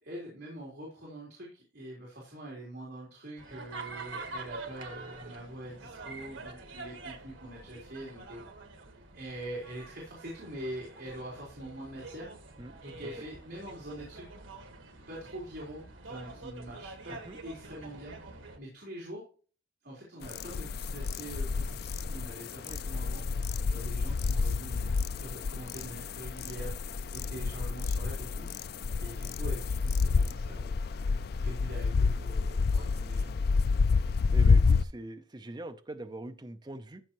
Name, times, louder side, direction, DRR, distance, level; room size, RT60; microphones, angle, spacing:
voice 1, 0.0-8.4 9.1-12.4 12.8-14.4 15.1-18.1 18.6-19.2 19.8-23.2 23.6-26.7 27.1-28.5 29.0-30.8 31.4-33.3, right 1 dB, 55° right, -4 dB, 3.8 m, -44 dB
sound 1, 3.4-18.6, right 3 dB, 80° right, 1.6 m, -46 dB
voice 2, 12.6-13.1 17.1-17.4 22.0-22.4 22.7-22.8 34.3-37.0, right 1 dB, 20° right, 7 dB, 0.6 m, -43 dB
sound 2, 20.2-34.8, left 4 dB, 50° left, 0.3 m, -29 dB
13.5 x 6.3 x 3.0 m, 0.39 s
head